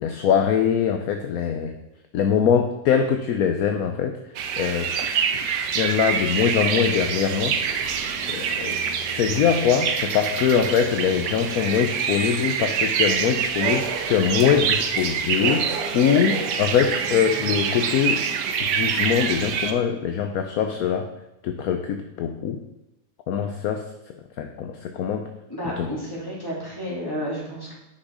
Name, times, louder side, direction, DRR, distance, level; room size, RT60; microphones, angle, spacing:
voice 1, 0.0-1.8 2.1-4.2 4.6-5.4 5.7-7.6 8.3-8.8 9.1-18.2 18.6-21.1 21.4-22.6 23.3-23.8 24.4-25.3 25.8-25.9, left 8 dB, 65° left, 6 dB, 1.1 m, -23 dB
sound 1, 4.4-19.7, right 7 dB, 85° right, 1.4 m, -26 dB
voice 2, 25.5-27.7, equal, 15° left, -5 dB, 3.0 m, -31 dB
9.9 x 6.3 x 4.8 m, 0.91 s
omnidirectional pair, 1.8 m